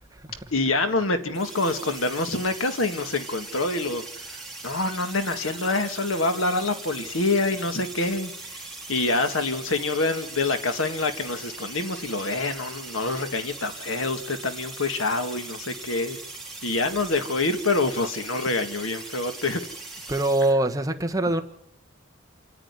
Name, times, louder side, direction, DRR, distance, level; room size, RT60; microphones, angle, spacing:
voice 1, 0.5-4.0 4.3-4.4 4.6-8.3 8.9-16.2 16.6-19.6, left 2 dB, 75° left, 1.8 m, -26 dB
sound 1, 1.3-20.5, right 3 dB, ahead, 3.7 m, -40 dB
voice 2, 20.1-21.4, right 2 dB, 15° right, 1.2 m, -23 dB
27.5 x 10.0 x 9.7 m
head